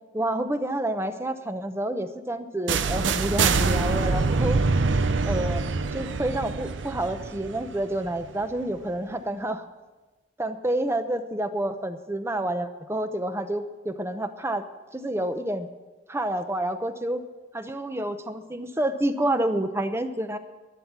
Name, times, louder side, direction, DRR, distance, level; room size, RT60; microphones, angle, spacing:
voice 1, 0.1-4.7 5.2-9.7 10.4-14.7 14.9-15.7 16.1-17.2 17.5-20.4, right 1 dB, 15° right, 9 dB, 0.8 m, -29 dB
sound 1, 2.7-8.5, right 4 dB, 85° right, 0.7 m, -25 dB
11.5 x 11.5 x 7.3 m, 1.2 s
head